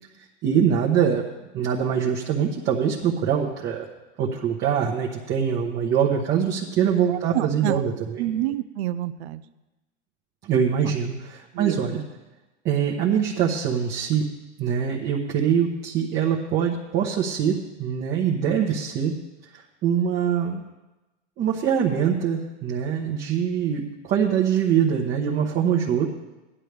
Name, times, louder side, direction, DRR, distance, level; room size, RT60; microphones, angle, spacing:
voice 1, 0.4-1.2 1.5-3.9 4.2-8.2 10.4-12.0 12.6-14.3 14.6-19.1 19.5-20.6 21.4-26.1, right 8 dB, 30° right, -2 dB, 1.1 m, -23 dB
voice 2, 7.1-7.8 8.2-9.4 10.8-10.9 11.5-11.8, right 13 dB, 65° right, 13 dB, 0.7 m, -28 dB
15.5 x 11.0 x 3.4 m, 1.1 s
supercardioid pair, 145°, 36 cm